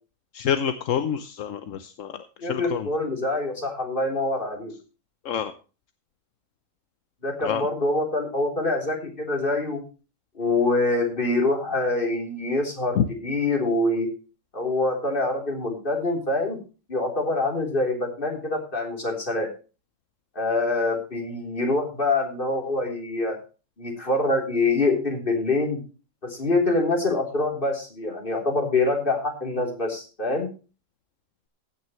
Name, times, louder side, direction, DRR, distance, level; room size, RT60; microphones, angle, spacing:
voice 1, 0.3-2.2 2.5-2.9 5.2-5.5 7.4-7.6 13.0-13.1, left 8 dB, 75° left, 10 dB, 1.2 m, -26 dB
voice 2, 2.4-4.7 7.2-9.8 10.4-14.1 14.5-16.6 16.9-19.5 20.4-23.4 23.8-25.8 26.2-30.5, left 2 dB, 40° left, 1 dB, 3.8 m, -25 dB
15.5 x 9.8 x 3.1 m, 0.34 s
omnidirectional pair, 1.3 m